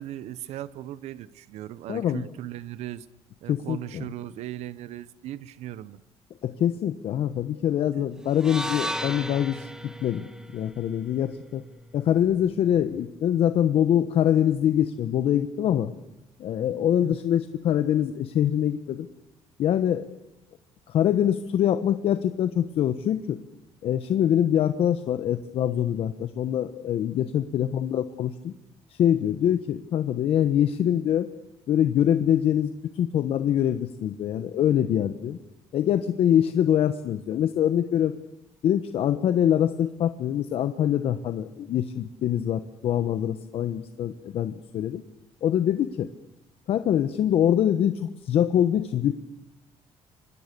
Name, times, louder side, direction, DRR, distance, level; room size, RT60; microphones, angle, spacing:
voice 1, 0.0-3.1 3.4-6.0 9.5-9.7 17.0-17.2, right 13 dB, 75° right, 17 dB, 1.0 m, -38 dB
voice 2, 1.9-2.2 3.5-4.0 6.4-9.7 10.0-11.6 11.9-15.9 16.4-19.1 19.6-20.1 20.9-23.4 23.8-28.5 28.9-31.3 31.7-35.4 35.7-38.1 38.6-45.0 45.4-46.1 46.7-49.1, left 10 dB, 60° left, 10 dB, 1.2 m, -24 dB
sound 1, 8.3-12.5, right 1 dB, 5° right, 2.1 m, -36 dB
28.5 x 25.0 x 6.9 m, 0.88 s
cardioid pair, 120°, 11 cm